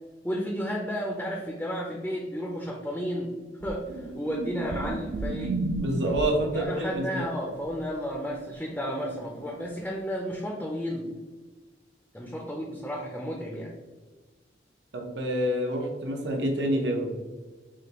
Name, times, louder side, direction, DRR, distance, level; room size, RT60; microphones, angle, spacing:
voice 1, 0.2-3.4 3.6-5.6 6.5-11.1 12.1-13.7, equal, 10° left, -1 dB, 0.4 m, -32 dB
sound 1, 3.6-6.5 9.4-9.5, right 2 dB, 60° right, 0.3 m, -32 dB
voice 2, 5.7-7.2 14.9-17.1, right 1 dB, 85° right, 1 dB, 0.8 m, -27 dB
6.1 x 2.3 x 2.9 m, 1.3 s
head